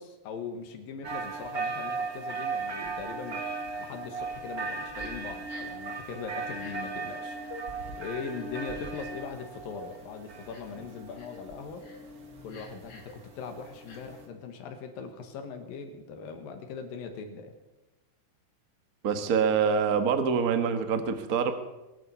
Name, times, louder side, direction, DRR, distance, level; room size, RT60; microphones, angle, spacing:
voice 1, 0.0-3.5 3.8-7.4 8.0-11.9 12.4-17.5, left 5 dB, 90° left, 5 dB, 3.2 m, -40 dB
sound 1, 1.0-14.3, right 4 dB, 40° right, 1.5 m, -37 dB
Crying sobbing, 5.0-5.1 5.5-5.8 6.5-6.7 7.4-7.6 8.5-9.2 9.7-9.9 10.5-10.8 11.1-11.4 11.8-12.0 12.5-13.1 13.9-14.0, left 4 dB, 40° left, 3.6 m, -49 dB
voice 2, 19.0-21.5, right 6 dB, 75° right, 9 dB, 0.8 m, -25 dB
22.5 x 9.4 x 7.0 m, 1.0 s
omnidirectional pair, 3.9 m